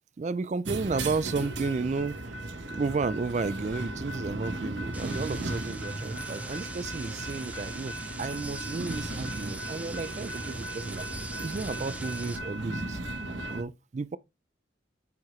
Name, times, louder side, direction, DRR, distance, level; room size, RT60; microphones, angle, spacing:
voice 1, 0.2-2.4 2.7-11.1 11.4-13.0 13.5-14.2, right 4 dB, 40° right, 0.3 m, -33 dB
sound 1, 0.7-13.6, right 1 dB, 80° right, 1.3 m, -36 dB
sound 2, 4.9-12.4, right 2 dB, 10° right, 0.7 m, -42 dB
8.4 x 4.6 x 3.2 m
head